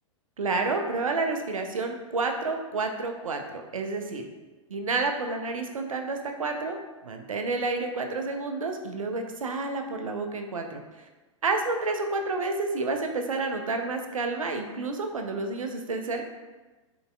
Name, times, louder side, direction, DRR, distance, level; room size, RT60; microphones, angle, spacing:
voice 1, 0.4-4.2 4.7-6.8 7.0-10.8 11.4-16.2, right 3 dB, 85° right, 4 dB, 0.5 m, -29 dB
3.9 x 3.9 x 2.2 m, 1.2 s
figure-of-eight pair, 100°, 17 cm